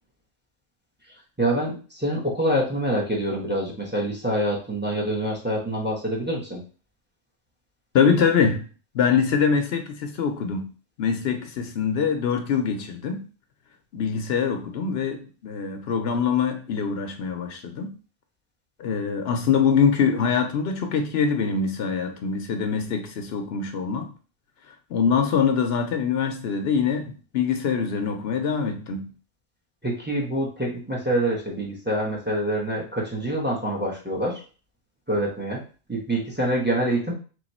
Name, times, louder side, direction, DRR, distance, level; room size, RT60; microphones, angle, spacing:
voice 1, 1.4-6.6 29.8-34.4 35.1-35.6 35.9-37.1, right 1 dB, 10° right, -2 dB, 1.0 m, -26 dB
voice 2, 7.9-8.6 8.9-10.7 11.0-13.2 13.9-17.9 18.8-24.1 24.7-29.1, left 6 dB, 75° left, 6 dB, 0.8 m, -24 dB
3.3 x 3.1 x 4.1 m, 0.37 s
omnidirectional pair, 1.1 m